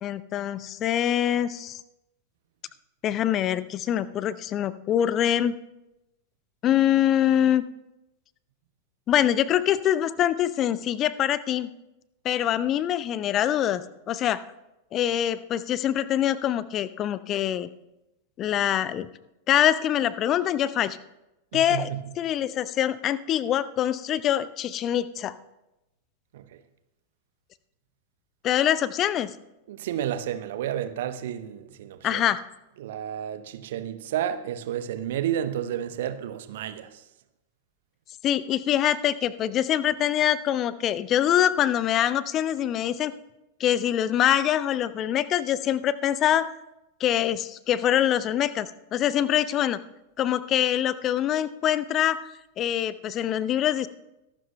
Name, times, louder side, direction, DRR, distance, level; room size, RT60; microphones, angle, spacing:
voice 1, 0.0-1.8 3.0-5.5 6.6-7.6 9.1-11.7 12.2-14.4 14.9-17.7 18.4-19.1 19.5-21.0 21.5-25.3 28.4-29.4 32.0-32.4 38.2-43.1 43.6-46.5 47.0-48.7 48.9-49.8 50.2-52.3 52.6-53.9, left 11 dB, 30° left, 0.5 m, -24 dB
voice 2, 21.5-22.0 26.3-26.4 29.7-32.2 32.8-37.0, right 10 dB, 55° right, 0.8 m, -31 dB
23.0 x 12.5 x 2.2 m
figure-of-eight pair, 90°, 0 cm